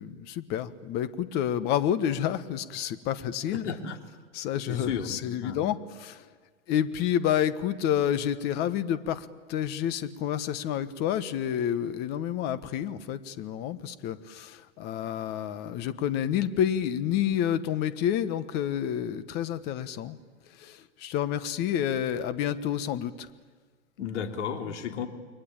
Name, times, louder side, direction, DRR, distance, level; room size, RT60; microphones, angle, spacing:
voice 1, 0.0-3.7 4.3-6.2 6.7-20.2 20.6-23.3, left 10 dB, 25° left, 13 dB, 1.2 m, -29 dB
voice 2, 3.5-4.0 4.7-5.6 24.0-25.1, left 7 dB, 70° left, 5 dB, 3.3 m, -33 dB
29.5 x 22.5 x 8.8 m, 1.5 s
hypercardioid pair, 150°, 36 cm